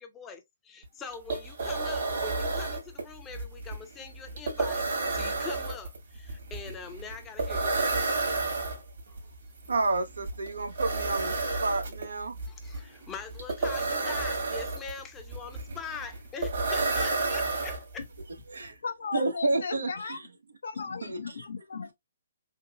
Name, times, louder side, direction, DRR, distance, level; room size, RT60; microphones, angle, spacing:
voice 1, 0.0-4.9 5.1-8.0 12.5-18.0, left 5 dB, 15° left, 0.6 m, -43 dB
sound 1, 0.8-0.9 1.1-18.2, right 3 dB, 65° right, 1.6 m, -31 dB
voice 2, 9.7-12.3 18.5-18.8 19.1-20.2 21.0-21.2, right 3 dB, 85° right, 0.7 m, -30 dB
voice 3, 18.8-20.2 20.6-21.9, left 5 dB, 75° left, 0.7 m, -36 dB
3.6 x 2.8 x 2.2 m
hypercardioid pair, 150°, 0 cm